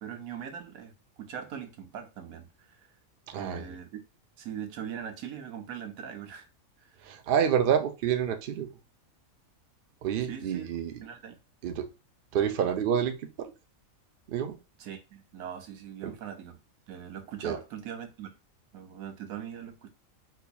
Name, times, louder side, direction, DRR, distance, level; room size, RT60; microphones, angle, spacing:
voice 1, 0.0-2.9 3.3-4.0 4.4-6.5 10.3-10.7 11.0-11.4 14.8-16.6 16.9-18.3 18.7-19.9, right 8 dB, 80° right, 1.1 m, -41 dB
voice 2, 3.3-3.6 7.0-8.7 10.0-11.0 11.6-11.9 12.3-13.5 14.3-14.6 16.0-16.1 17.4-17.6, right 8 dB, 65° right, 0.5 m, -28 dB
4.2 x 2.8 x 2.2 m
omnidirectional pair, 1.4 m